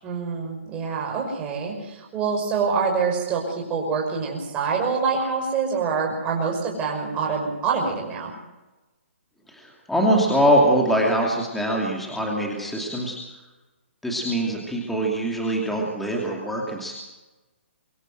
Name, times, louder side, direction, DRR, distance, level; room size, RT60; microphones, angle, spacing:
voice 1, 0.0-8.3, right 5 dB, 15° right, -1 dB, 5.8 m, -26 dB
voice 2, 9.5-13.2 14.0-16.9, right 1 dB, ahead, -2 dB, 2.7 m, -23 dB
24.5 x 15.0 x 7.9 m, 1.1 s
hypercardioid pair, 160°, 7 cm